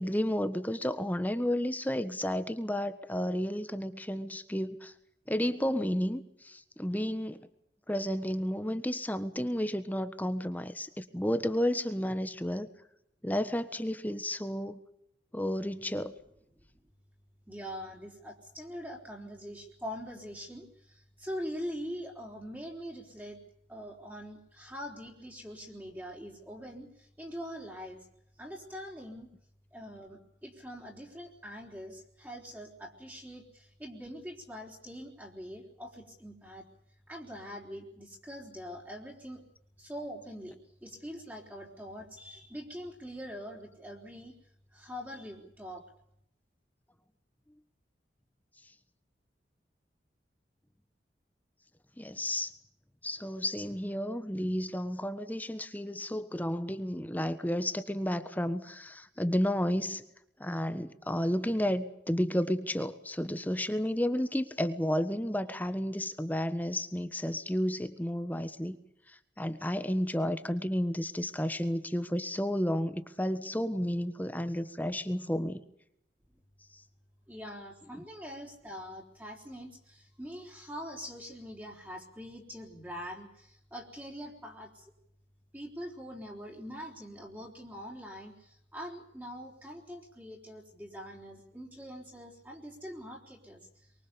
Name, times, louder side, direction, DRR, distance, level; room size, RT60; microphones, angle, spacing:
voice 1, 0.0-4.9 5.3-7.4 7.9-12.7 13.2-14.8 15.3-16.1 52.0-52.5 53.0-60.0 60.4-68.8 69.4-75.6, equal, 10° left, 10 dB, 1.4 m, -32 dB
voice 2, 17.5-23.4 23.7-28.1 28.4-29.3 29.7-36.7 37.1-39.4 39.8-44.4 44.7-45.8 77.3-84.9 85.5-93.9, equal, 10° right, -2 dB, 4.0 m, -43 dB
24.0 x 23.5 x 7.0 m, 0.75 s
head